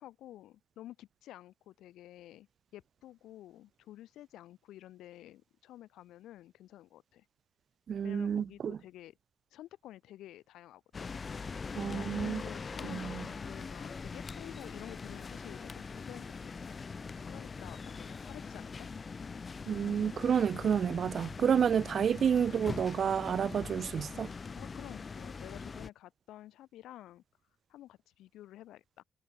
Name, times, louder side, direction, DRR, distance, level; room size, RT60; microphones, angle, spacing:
voice 1, 0.0-2.5 2.7-7.2 8.0-9.2 9.5-11.2 11.8-16.6 17.1-18.9 24.6-27.2 27.7-29.0, left 14 dB, 85° left, 2.6 m, -51 dB
voice 2, 7.9-8.8 11.8-12.4 12.9-13.3 19.7-24.3, right 7 dB, 55° right, 0.8 m, -30 dB
sound 1, 10.9-25.9, left 5 dB, 35° left, 0.9 m, -42 dB
cardioid pair, 90°, 0 cm